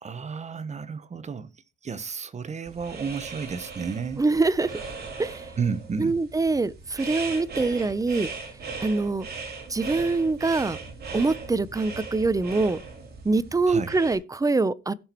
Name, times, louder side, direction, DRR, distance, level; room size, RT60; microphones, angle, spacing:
voice 1, 0.0-1.5 1.8-4.2 5.6-6.2 13.7-13.9, right 5 dB, 35° right, 1.0 m, -32 dB
sound 1, 2.7-14.2, right 4 dB, 50° right, 2.9 m, -38 dB
voice 2, 4.2-4.8 5.2-5.5 6.0-8.3 8.8-9.3 9.7-10.8 11.1-12.8 13.2-14.9, right 3 dB, 15° right, 0.6 m, -24 dB
16.5 x 5.9 x 3.0 m
cardioid pair, 90°, 20 cm